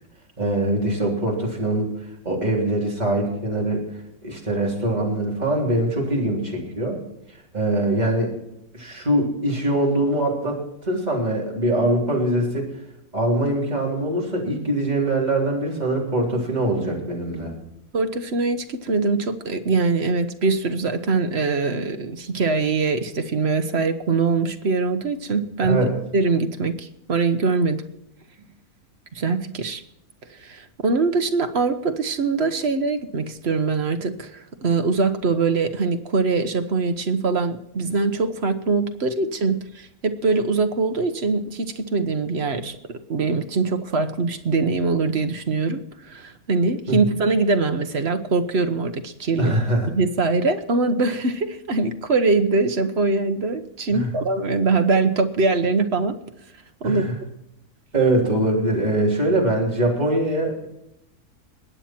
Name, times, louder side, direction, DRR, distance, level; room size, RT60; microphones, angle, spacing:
voice 1, 0.4-2.0 2.3-3.9 4.2-7.0 7.5-8.4 8.7-12.7 13.1-17.5 25.7-25.9 46.9-47.1 49.4-49.9 53.9-54.1 56.8-57.2 57.9-60.7, right 1 dB, 25° right, -2 dB, 3.6 m, -23 dB
voice 2, 17.9-25.9 26.1-27.8 29.1-29.8 30.3-49.5 49.9-56.2 56.8-57.0, right 3 dB, 45° right, 8 dB, 1.2 m, -23 dB
21.0 x 8.9 x 4.4 m, 0.86 s
omnidirectional pair, 1.6 m